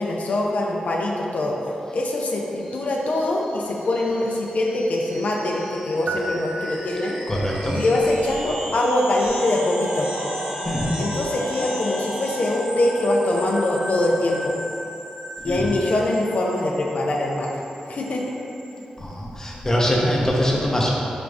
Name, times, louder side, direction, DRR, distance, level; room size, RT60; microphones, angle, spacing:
voice 1, 0.0-1.6 1.9-7.2 7.7-10.1 11.0-14.6 15.4-17.6 17.9-18.2, left 1 dB, 65° left, -1 dB, 0.5 m, -23 dB
sound 1, 2.6-18.8, equal, 70° right, 1.3 m, -35 dB
sound 2, 6.1-7.5, right 2 dB, 50° right, 0.3 m, -32 dB
voice 2, 7.3-7.8 10.7-10.9 15.4-15.8 19.0-20.9, equal, 20° left, -4 dB, 0.8 m, -23 dB
5.0 x 2.4 x 3.4 m, 2.8 s
cardioid pair, 60°, 3 cm